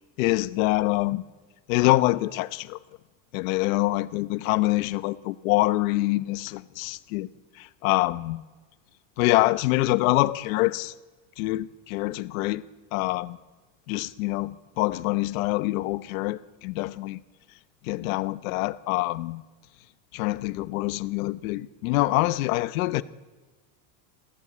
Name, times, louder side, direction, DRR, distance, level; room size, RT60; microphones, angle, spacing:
voice 1, 0.2-1.2 1.7-2.8 3.3-7.3 7.6-8.4 9.2-10.9 11.4-12.6 12.9-13.4 13.9-17.2 17.8-19.4 20.1-23.0, left 19 dB, 85° left, 1.0 m, -25 dB
27.0 x 15.5 x 8.7 m
cardioid pair, 165°, 40 cm